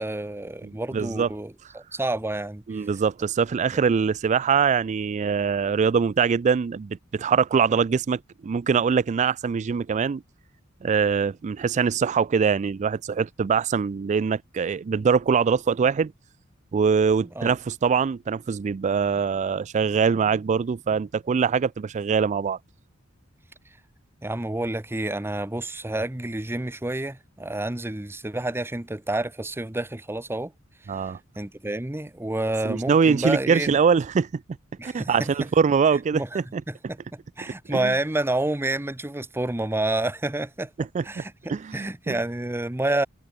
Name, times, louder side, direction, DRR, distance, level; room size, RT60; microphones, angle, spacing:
voice 1, 0.0-2.6 3.7-3.8 17.4-17.5 24.2-30.5 31.4-33.8 34.8-35.5 36.1-36.4 36.7-40.7 41.0-43.1, right 2 dB, 10° right, 0.8 m, -29 dB
voice 2, 0.6-1.3 2.7-10.2 10.8-16.1 16.7-22.6 30.9-31.2 32.6-34.4 34.8-36.6 37.5-37.9 40.8-41.2 41.5-42.2, right 6 dB, 35° right, 0.3 m, -23 dB
head